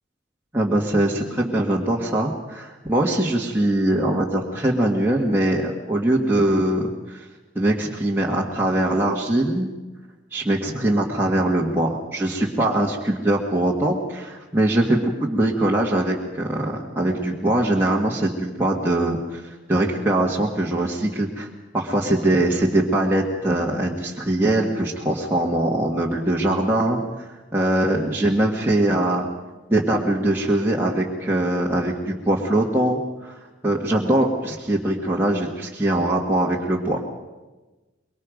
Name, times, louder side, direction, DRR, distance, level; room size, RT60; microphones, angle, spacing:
voice 1, 0.5-7.2 7.5-9.7 10.3-21.5 21.7-29.2 29.7-37.0, right 1 dB, 10° right, -4 dB, 1.8 m, -22 dB
24.0 x 22.5 x 5.3 m, 1.2 s
head